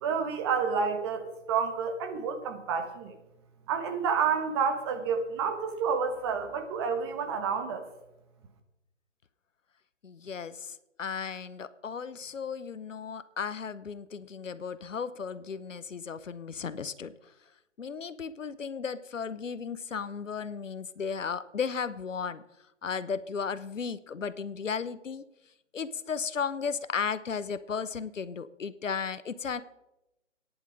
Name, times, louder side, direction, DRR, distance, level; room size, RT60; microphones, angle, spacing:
voice 1, 0.0-3.1 3.7-7.9, right 6 dB, 20° right, 7 dB, 1.1 m, -29 dB
voice 2, 10.0-17.1 17.8-22.4 22.8-25.2 25.7-29.6, left 6 dB, 85° left, 15 dB, 0.8 m, -35 dB
11.0 x 10.0 x 5.0 m, 0.91 s
figure-of-eight pair, 145°, 37 cm